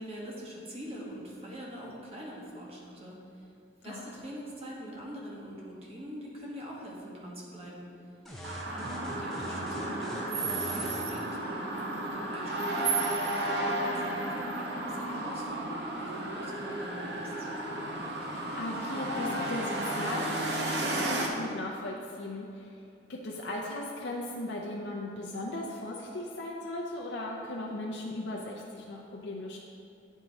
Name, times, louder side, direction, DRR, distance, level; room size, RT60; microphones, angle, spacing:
voice 1, 0.0-3.2 3.8-7.9 8.7-13.1 13.6-15.9 16.1-17.5, equal, 30° right, -4 dB, 1.2 m, -43 dB
sound 1, 8.3-11.1, equal, ahead, 0.6 m, -42 dB
sound 2, 8.4-21.3, right 2 dB, 60° right, 0.7 m, -33 dB
voice 2, 18.2-22.7 23.1-29.6, left 1 dB, 65° left, -3 dB, 0.5 m, -37 dB
9.1 x 3.6 x 4.0 m, 2.6 s
head